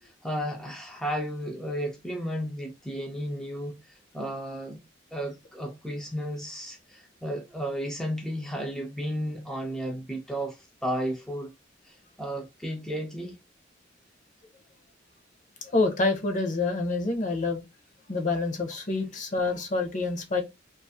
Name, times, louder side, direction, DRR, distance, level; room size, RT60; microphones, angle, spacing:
voice 1, 0.0-4.8 5.1-11.5 11.8-13.4, equal, ahead, 0.4 m, -33 dB
voice 2, 15.7-17.6 18.1-20.4, left 3 dB, 45° left, 0.7 m, -27 dB
2.5 x 2.4 x 2.6 m
head